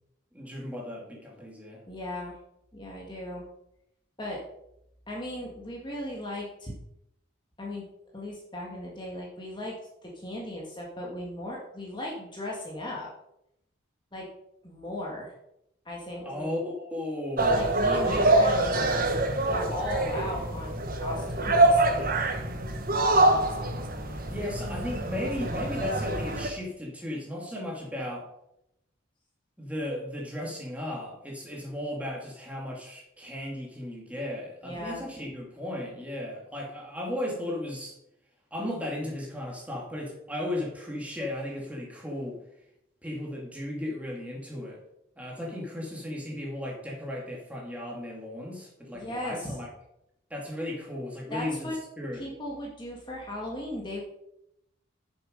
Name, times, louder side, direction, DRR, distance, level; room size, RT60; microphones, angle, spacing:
voice 1, 0.3-1.8 16.2-17.6 18.0-19.1 24.1-28.3 29.6-37.9 38.5-42.4 43.0-44.8 45.2-49.7 50.3-52.2, left 1 dB, 5° right, -2 dB, 2.4 m, -35 dB
voice 2, 1.9-2.4 2.7-3.5 4.2-4.4 5.1-6.7 7.6-7.9 8.1-13.1 14.1-14.3 14.6-15.3 15.9-16.5 17.5-19.0 19.5-22.1 34.6-35.0 48.9-49.6 51.3-51.8 52.1-54.0, left 1 dB, 20° left, -3 dB, 1.8 m, -37 dB
sound 1, 17.4-26.5, right 2 dB, 45° right, 1.2 m, -25 dB
11.0 x 7.1 x 5.2 m, 0.81 s
head